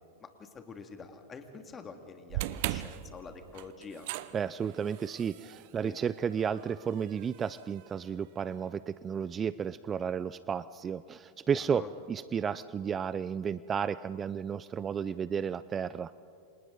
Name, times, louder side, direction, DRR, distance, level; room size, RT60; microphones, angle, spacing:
voice 1, 0.2-4.1 5.7-6.0 11.5-11.9, left 5 dB, 25° left, 6 dB, 2.3 m, -47 dB
sound 1, 2.3-8.6, right 15 dB, 60° right, 0.8 m, -40 dB
voice 2, 4.3-16.1, right 7 dB, 25° right, 17 dB, 0.4 m, -33 dB
29.0 x 26.0 x 4.0 m, 2.5 s
hypercardioid pair, 100°, 0 cm